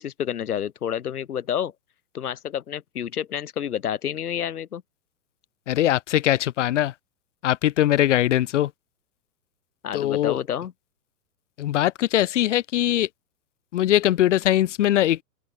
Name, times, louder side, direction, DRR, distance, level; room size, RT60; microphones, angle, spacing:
voice 1, 0.0-1.7 2.1-4.8 9.8-10.7, left 9 dB, 65° left, 2.0 m, -29 dB
voice 2, 5.7-6.9 7.4-8.7 9.9-10.4 11.6-13.1 13.7-15.2, left 13 dB, 50° left, 1.0 m, -21 dB
open air
figure-of-eight pair, 115°, 49 cm